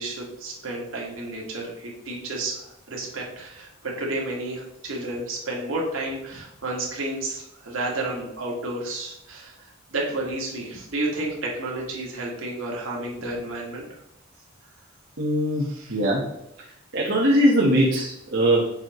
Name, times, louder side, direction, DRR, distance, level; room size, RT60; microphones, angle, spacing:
voice 1, 0.0-13.9 15.7-16.0, right 2 dB, 80° right, -2 dB, 2.0 m, -31 dB
voice 2, 15.2-16.3 16.9-18.7, equal, 60° right, -5 dB, 1.2 m, -21 dB
7.4 x 4.6 x 3.0 m, 0.82 s
head